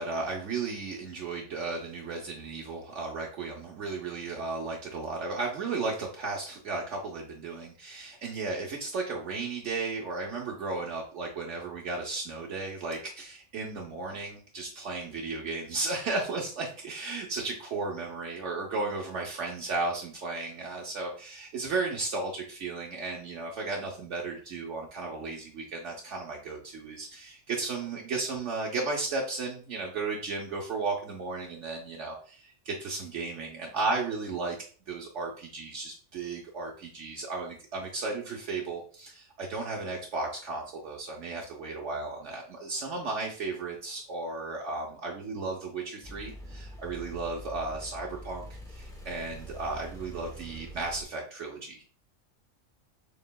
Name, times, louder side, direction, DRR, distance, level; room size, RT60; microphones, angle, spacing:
voice 1, 0.0-34.6 34.9-51.8, right 3 dB, 70° right, -1 dB, 1.1 m, -34 dB
sound 1, 46.0-51.0, right 1 dB, 5° left, 0.5 m, -44 dB
6.6 x 3.1 x 2.2 m, 0.42 s
omnidirectional pair, 1.3 m